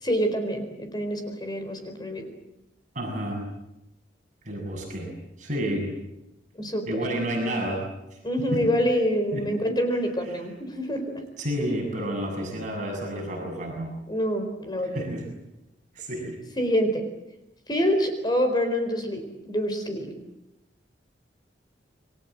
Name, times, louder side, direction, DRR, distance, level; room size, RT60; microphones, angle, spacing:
voice 1, 0.0-2.2 6.5-6.9 8.2-11.2 14.1-15.0 16.6-17.0 17.7-20.1, equal, 25° left, 6 dB, 4.4 m, -26 dB
voice 2, 2.9-3.4 4.4-5.9 6.9-8.7 9.3-9.5 10.2-10.5 11.4-14.0 14.8-15.3 15.9-16.4, equal, 45° right, 0 dB, 7.5 m, -30 dB
28.5 x 22.5 x 7.6 m, 0.88 s
head